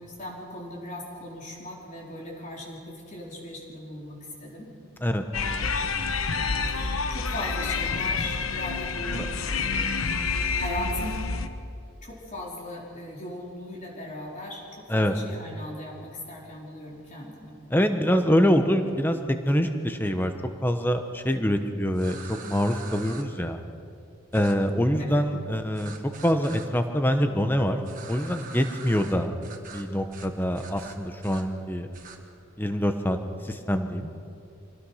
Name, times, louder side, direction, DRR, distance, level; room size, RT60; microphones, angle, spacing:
voice 1, 0.0-4.7 6.7-10.0 10.5-11.2 12.0-17.6 25.0-25.3, left 1 dB, 35° left, -3 dB, 4.4 m, -38 dB
sound 1, 5.3-11.5, left 4 dB, 75° left, 1.1 m, -28 dB
voice 2, 17.7-20.3 20.6-23.6 24.3-25.9 26.2-27.8 28.1-29.3 29.7-31.9 32.6-33.2 33.4-34.1, equal, 10° left, 7 dB, 1.1 m, -25 dB
sound 2, 21.9-23.2 24.3-24.5 25.7-26.7 27.8-29.1 29.4-29.8 30.1-30.3 30.5-31.4 31.9-32.2, right 5 dB, 40° right, 1.7 m, -44 dB
26.5 x 19.0 x 5.8 m, 2.5 s
head